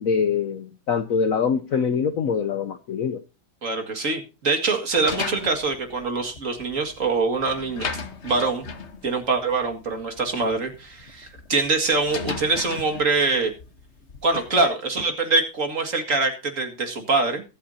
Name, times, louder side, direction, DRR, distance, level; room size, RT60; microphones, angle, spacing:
voice 1, 0.0-3.2, left 6 dB, 60° left, 10 dB, 1.0 m, -24 dB
voice 2, 3.6-8.0 8.2-8.6 9.0-13.5 14.2-17.4, right 3 dB, 40° right, 5 dB, 2.3 m, -24 dB
sound 1, 4.9-14.6, left 5 dB, 40° left, 1.3 m, -37 dB
23.0 x 8.4 x 2.7 m, 0.31 s
omnidirectional pair, 2.1 m